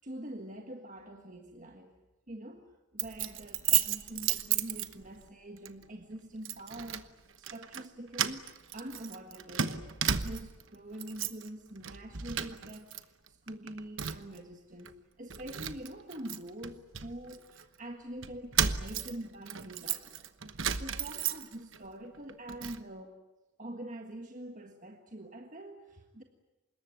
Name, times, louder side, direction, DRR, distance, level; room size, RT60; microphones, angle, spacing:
voice 1, 0.0-1.9 2.3-2.6 2.9-9.9 10.2-23.2 23.6-26.2, right 1 dB, 35° right, 4 dB, 1.6 m, -45 dB
Keys jangling, 3.0-5.3 5.7-5.9 6.5-7.1 7.4-7.9 8.1-10.6 10.9-11.5 11.8-13.0 13.3-14.4 14.9-15.0 15.3-17.6 18.2-21.8 22.1-22.8, right 9 dB, 55° right, 1.1 m, -34 dB
25.5 x 21.5 x 9.2 m, 1.1 s
head